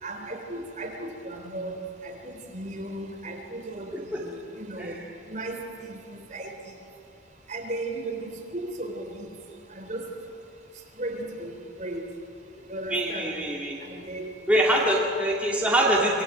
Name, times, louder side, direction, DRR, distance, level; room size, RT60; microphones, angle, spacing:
voice 1, 0.0-5.0 5.3-6.5 7.5-9.3 9.7-10.1 11.0-12.0 12.7-13.3 14.0-14.3 14.7-14.8, right 2 dB, 40° right, 2 dB, 3.7 m, -36 dB
voice 2, 3.9-4.2 4.8-4.9 12.9-13.7 14.5-16.2, right 1 dB, 5° right, -4 dB, 2.5 m, -24 dB
26.5 x 20.0 x 9.3 m, 2.6 s
head